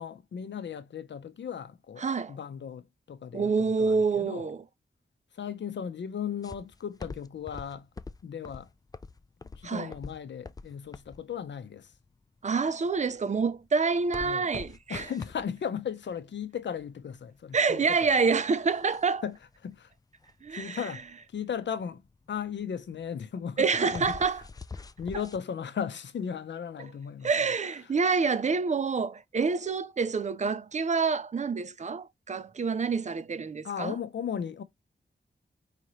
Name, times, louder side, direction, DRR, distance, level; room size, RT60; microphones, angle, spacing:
voice 1, 0.0-4.5 5.3-7.9 8.2-8.7 9.5-11.9 14.2-14.5 14.9-18.1 19.2-19.4 19.6-19.9 20.5-22.0 22.3-24.2 25.0-27.3 27.8-27.9 33.6-34.6, left 7 dB, 90° left, 0.7 m, -36 dB
voice 2, 2.0-2.3 3.3-4.6 9.6-9.9 12.4-15.1 17.5-19.2 20.4-20.8 23.6-24.4 27.2-34.0, right 5 dB, 40° right, 0.5 m, -27 dB
sound 1, 6.4-25.4, left 4 dB, 20° left, 0.3 m, -46 dB
4.9 x 2.9 x 3.0 m
wide cardioid pair, 100°, 18 cm